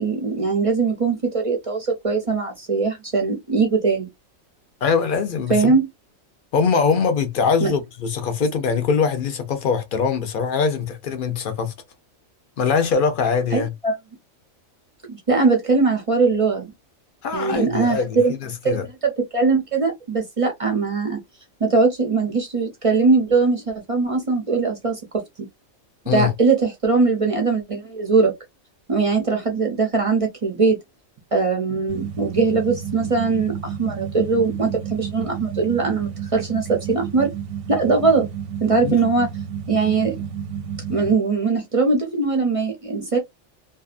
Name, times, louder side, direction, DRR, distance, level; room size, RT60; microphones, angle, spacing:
voice 1, 0.0-4.1 5.5-5.9 7.6-7.7 13.5-13.9 15.1-16.7 17.3-18.3 18.6-21.2 21.6-25.2 26.1-28.3 28.9-30.8 31.3-37.3 37.7-38.3 38.6-39.3 39.7-40.2 40.9-43.2, right 4 dB, 45° right, 0.4 m, -21 dB
voice 2, 4.8-5.7 6.5-11.7 12.6-13.7 17.2-18.8 26.1-26.3 38.8-39.0, left 5 dB, 60° left, 0.6 m, -22 dB
sound 1, 31.9-41.1, right 8 dB, 85° right, 1.1 m, -31 dB
2.6 x 2.3 x 2.4 m
omnidirectional pair, 1.4 m